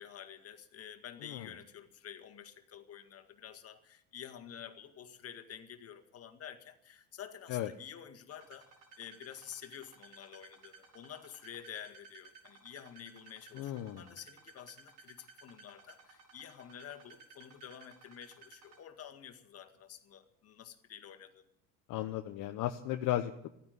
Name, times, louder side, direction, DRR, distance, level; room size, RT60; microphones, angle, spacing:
voice 1, 0.0-8.7 9.0-21.5, left 9 dB, 40° left, 7 dB, 1.9 m, -50 dB
sound 1, 8.3-18.8, right 5 dB, 75° right, 6.4 m, -57 dB
voice 2, 13.6-14.0 21.9-23.5, left 13 dB, 55° left, 6 dB, 1.1 m, -35 dB
14.0 x 9.9 x 9.5 m, 0.76 s
supercardioid pair, 100°, 36 cm